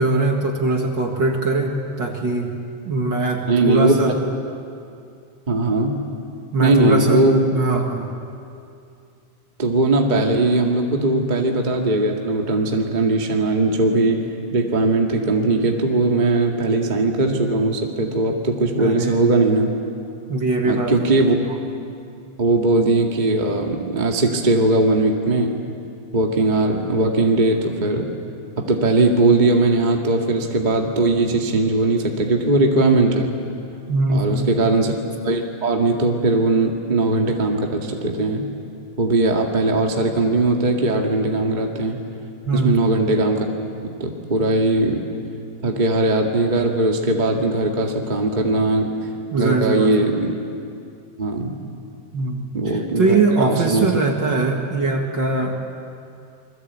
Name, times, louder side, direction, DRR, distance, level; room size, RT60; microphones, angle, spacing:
voice 1, 0.0-2.5 2.8-4.1 6.5-7.3 7.5-8.1 18.8-19.3 20.3-21.1 33.9-34.7 42.5-42.7 49.3-49.9 52.1-52.5 53.0-55.7, right 3 dB, 40° right, 2 dB, 2.2 m, -21 dB
voice 2, 3.5-4.0 5.5-6.0 6.6-7.5 9.6-14.2 14.5-19.7 20.6-21.6 22.4-25.6 26.1-28.1 28.7-33.3 34.1-35.0 35.2-38.5 39.0-42.0 42.5-43.5 44.0-45.0 45.6-48.9 49.4-50.3 51.2-51.6 52.5-53.9, right 2 dB, 20° right, 1 dB, 1.5 m, -19 dB
28.5 x 21.5 x 8.4 m, 2.5 s
omnidirectional pair, 3.6 m